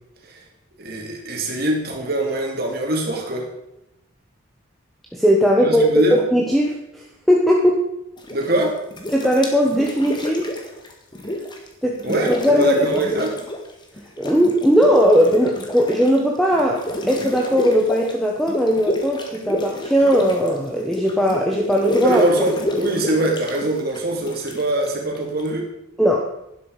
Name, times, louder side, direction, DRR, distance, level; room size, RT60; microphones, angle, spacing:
voice 1, 0.8-3.5 5.6-6.2 8.3-8.8 12.0-13.3 22.0-25.7, right 1 dB, 45° right, 0 dB, 2.9 m, -23 dB
voice 2, 5.1-7.9 9.1-10.5 11.8-12.0 12.3-13.0 14.2-22.2 26.0-26.3, equal, ahead, -1 dB, 1.1 m, -18 dB
sound 1, 8.2-8.6 8.9-11.7 11.9-13.7 14.0-25.5, left 1 dB, 20° left, 1.6 m, -29 dB
11.5 x 11.0 x 4.9 m, 0.83 s
head